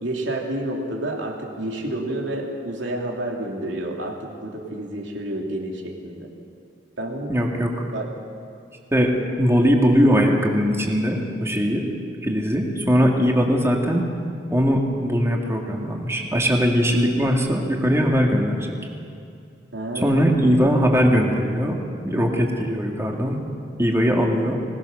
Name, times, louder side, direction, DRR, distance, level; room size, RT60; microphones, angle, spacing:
voice 1, 0.0-6.3 7.0-7.3 7.9-8.1 19.7-21.0, right 1 dB, 80° right, 0 dB, 3.1 m, -30 dB
voice 2, 7.3-7.7 8.9-11.8 12.2-14.0 14.5-18.8 20.0-21.8 22.0-23.4 23.8-24.6, equal, 15° right, 0 dB, 2.2 m, -20 dB
22.5 x 18.5 x 6.7 m, 2.4 s
head